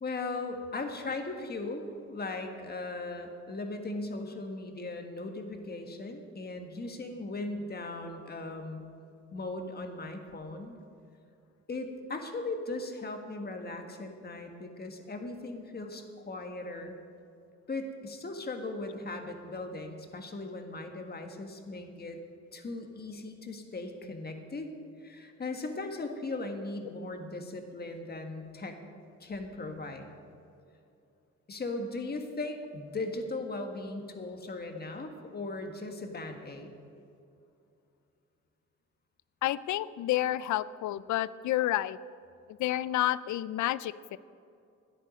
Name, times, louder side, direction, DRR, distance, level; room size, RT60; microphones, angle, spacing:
voice 1, 0.0-8.8 9.3-10.8 11.7-17.0 17.7-22.2 22.5-24.7 25.0-28.8 29.2-30.1 31.5-36.7, left 2 dB, 30° left, 5 dB, 1.6 m, -38 dB
voice 2, 39.4-42.0 42.6-44.2, left 14 dB, 70° left, 18 dB, 0.5 m, -30 dB
13.5 x 10.0 x 5.2 m, 2.6 s
cardioid pair, 90°, 30 cm